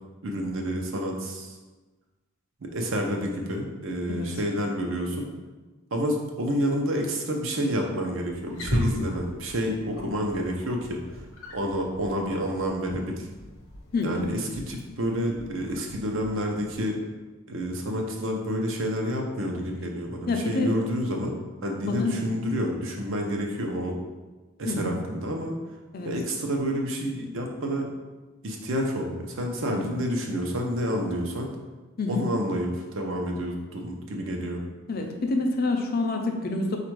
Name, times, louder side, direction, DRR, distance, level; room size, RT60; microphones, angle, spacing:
voice 1, 0.2-1.6 2.6-5.3 5.9-11.2 11.5-13.3 14.0-17.0 17.5-21.3 21.6-24.0 24.6-25.6 26.0-27.9 28.4-31.5 32.1-34.6, equal, 65° right, 1 dB, 0.6 m, -29 dB
voice 2, 4.1-4.4 13.9-14.3 20.3-20.7 21.9-22.2 24.7-25.0 25.9-26.2 29.7-29.9 32.0-32.3 34.9-36.8, left 3 dB, 45° left, 3 dB, 0.5 m, -27 dB
Wild animals, 8.3-16.8, left 1 dB, 65° left, 0.9 m, -37 dB
4.2 x 2.5 x 4.6 m, 1.2 s
head